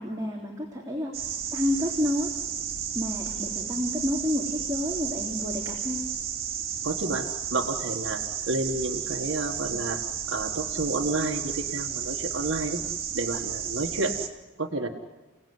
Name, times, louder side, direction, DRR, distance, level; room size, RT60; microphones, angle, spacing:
voice 1, 0.0-2.3 2.9-6.0, left 1 dB, 15° right, -2 dB, 3.3 m, -30 dB
sound 1, 1.1-14.3, right 8 dB, 50° right, 2.7 m, -33 dB
voice 2, 6.8-10.0 10.3-12.8 13.1-14.1 14.6-14.9, right 2 dB, 75° right, 1 dB, 1.7 m, -30 dB
28.0 x 18.0 x 9.6 m, 1.2 s
head